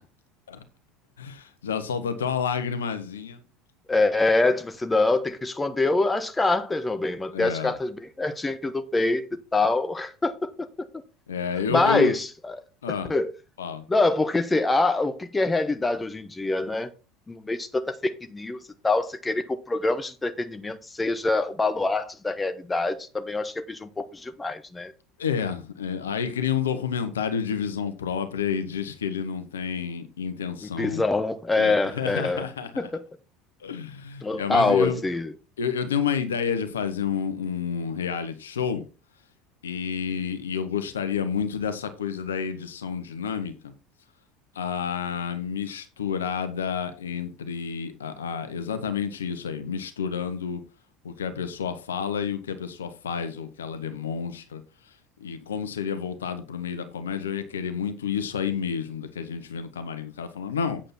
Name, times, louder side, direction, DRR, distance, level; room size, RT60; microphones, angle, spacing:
voice 1, 1.2-3.4 7.3-7.7 11.3-12.2 12.8-13.1 13.6-13.8 25.2-31.0 31.6-32.9 33.6-35.0 35.6-38.8 39.6-43.7 44.5-50.6 51.0-54.6 55.2-60.8, left 7 dB, 80° left, 1.2 m, -30 dB
voice 2, 3.9-9.3 9.5-10.5 11.7-12.5 13.1-13.3 13.9-16.9 17.3-24.9 30.6-32.4 32.8-33.0 34.2-35.3, left 2 dB, 15° left, 1.2 m, -25 dB
8.7 x 7.8 x 4.3 m
figure-of-eight pair, 70°, 0 cm